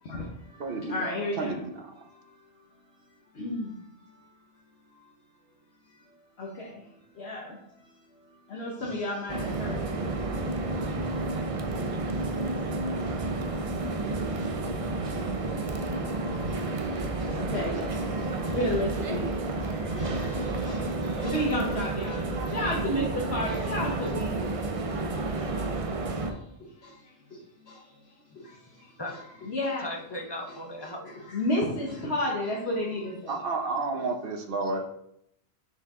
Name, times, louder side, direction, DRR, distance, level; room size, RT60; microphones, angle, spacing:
voice 1, 0.0-1.6 2.0-2.3 3.3-3.7 4.0-4.2 4.9-5.1 6.4-6.9 7.1-7.9 8.5-10.8 12.2-12.3 12.6-13.8 14.8-24.6 24.8-25.0 25.6-25.8 26.3-27.8 28.3-29.8 31.0-33.4, left 1 dB, 75° left, -3 dB, 1.4 m, -34 dB
voice 2, 0.6-1.9 33.3-34.8, right 3 dB, 60° right, 4 dB, 1.0 m, -31 dB
sound 1, 9.3-26.3, right 2 dB, 40° right, 0.6 m, -31 dB
voice 3, 29.8-31.0 34.6-34.8, left 1 dB, 25° left, 2 dB, 0.7 m, -37 dB
6.7 x 4.7 x 3.7 m, 0.75 s
omnidirectional pair, 1.1 m